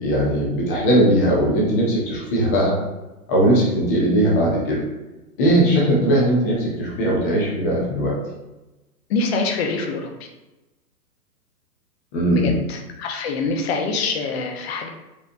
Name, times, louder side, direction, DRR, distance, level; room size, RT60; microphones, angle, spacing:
voice 1, 0.0-2.7 3.3-4.8 5.4-8.1 12.1-12.6, right 1 dB, 10° left, -3 dB, 0.4 m, -19 dB
voice 2, 9.1-10.1 12.3-14.9, left 4 dB, 40° left, 2 dB, 0.8 m, -25 dB
5.0 x 3.2 x 2.6 m, 1.0 s
hypercardioid pair, 130°, 47 cm